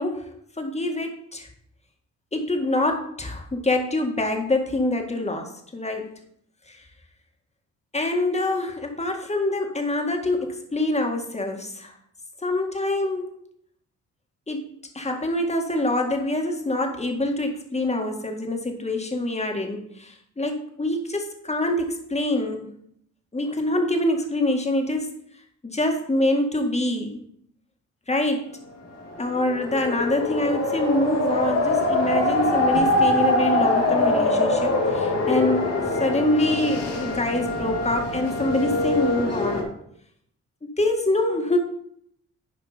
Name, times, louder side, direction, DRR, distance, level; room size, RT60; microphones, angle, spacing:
voice 1, 0.0-1.5 2.3-6.1 6.7-6.8 7.9-11.9 12.4-13.3 14.5-14.7 14.9-22.7 23.3-25.1 25.6-27.2 28.1-28.5 29.2-39.7 40.6-41.6, left 1 dB, 20° left, 3 dB, 1.9 m, -25 dB
sound 1, 29.0-39.6, left 2 dB, 60° left, 2.3 m, -23 dB
11.0 x 4.7 x 5.1 m, 0.69 s
cardioid pair, 75°, 29 cm